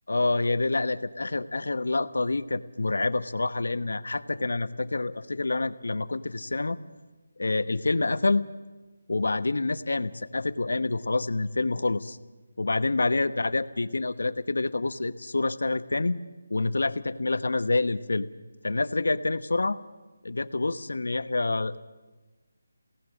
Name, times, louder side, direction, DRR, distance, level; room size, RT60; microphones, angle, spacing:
voice 1, 0.1-6.8 7.4-8.5 9.1-12.2 12.6-16.2 16.5-18.3 18.6-19.8 20.2-21.8, left 3 dB, 85° left, 14 dB, 1.0 m, -27 dB
22.5 x 17.5 x 7.3 m, 1.2 s
figure-of-eight pair, 175°, 0 cm